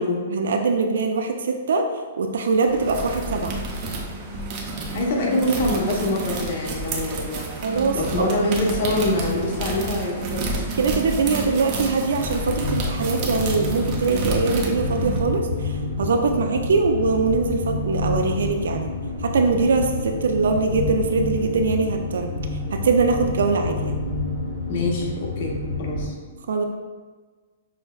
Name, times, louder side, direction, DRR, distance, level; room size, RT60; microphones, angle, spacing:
voice 1, 0.3-1.8 2.2-3.6 7.6-8.3 10.7-18.9 19.2-22.3 22.7-23.9 26.5-26.6, right 4 dB, 80° right, 4 dB, 0.3 m, -22 dB
sound 1, 2.6-15.2, right 2 dB, 30° right, 0.6 m, -30 dB
voice 2, 4.9-7.5 7.9-10.6 24.7-25.5 25.8-26.1, left 1 dB, 50° left, -2 dB, 0.7 m, -24 dB
sound 2, 12.1-26.1, left 3 dB, 90° left, 0.9 m, -29 dB
6.1 x 2.1 x 2.3 m, 1.4 s
hypercardioid pair, 155°, 0 cm